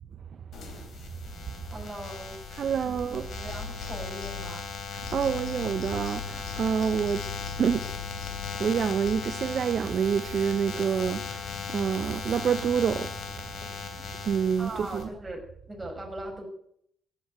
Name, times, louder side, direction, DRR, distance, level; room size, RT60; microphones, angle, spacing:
sound 1, 0.5-15.0, left 5 dB, 60° left, 3.6 m, -38 dB
voice 1, 1.7-2.4 2.8-4.7 14.6-16.5, right 1 dB, 15° right, 6.0 m, -40 dB
voice 2, 2.5-3.3 4.9-15.1, right 7 dB, 55° right, 0.7 m, -28 dB
sound 2, 3.5-4.8 5.0-9.2, left 6 dB, 75° left, 2.1 m, -40 dB
14.5 x 10.5 x 7.9 m
cardioid pair, 90°, 0 cm